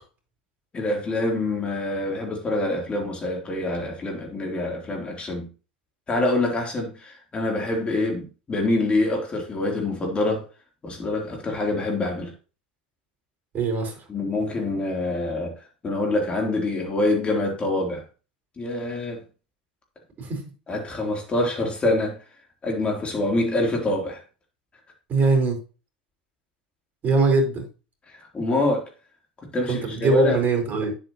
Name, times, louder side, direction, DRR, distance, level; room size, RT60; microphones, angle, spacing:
voice 1, 0.7-5.5 6.1-10.4 10.8-12.3 14.1-18.0 18.6-19.2 20.7-22.2 22.6-24.2 28.1-28.9 29.4-30.4, left 2 dB, 25° left, 3.6 m, -25 dB
voice 2, 13.5-14.1 20.2-20.4 25.1-25.6 27.0-27.7 29.7-30.9, right 3 dB, 35° right, 4.8 m, -22 dB
9.6 x 8.1 x 3.1 m
hypercardioid pair, 90°, 5 cm